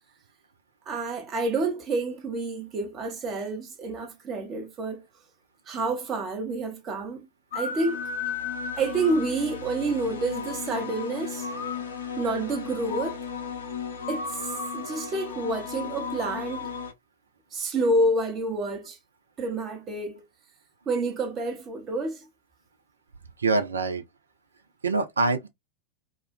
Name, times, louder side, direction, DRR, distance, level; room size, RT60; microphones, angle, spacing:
voice 1, 0.9-5.0 5.7-7.3 7.5-8.0 8.8-11.5 12.2-13.2 14.1-16.7 17.5-19.0 19.4-20.2 20.9-22.2, right 2 dB, 30° right, 0.8 m, -28 dB
sound 1, 7.5-16.9, left 6 dB, 65° left, 0.6 m, -34 dB
voice 2, 23.4-24.0 24.8-25.5, right 3 dB, 75° right, 0.4 m, -24 dB
2.3 x 2.1 x 2.5 m
figure-of-eight pair, 90°, 0 cm